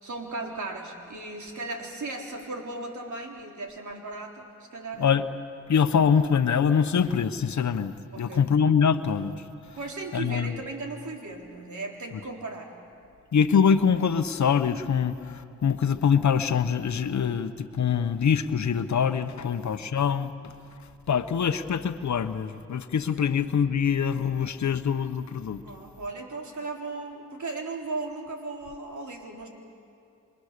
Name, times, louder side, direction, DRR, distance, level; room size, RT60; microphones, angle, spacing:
voice 1, 0.0-5.1 8.1-8.6 9.8-12.8 19.2-19.8 23.2-23.4 25.6-29.5, right 3 dB, 65° right, 1 dB, 3.9 m, -37 dB
voice 2, 5.7-9.3 9.6-9.8 10.1-10.5 13.3-20.5 21.1-25.6, left 7 dB, 65° left, 10 dB, 1.1 m, -24 dB
28.0 x 24.5 x 6.8 m, 2.5 s
supercardioid pair, 45°, 31 cm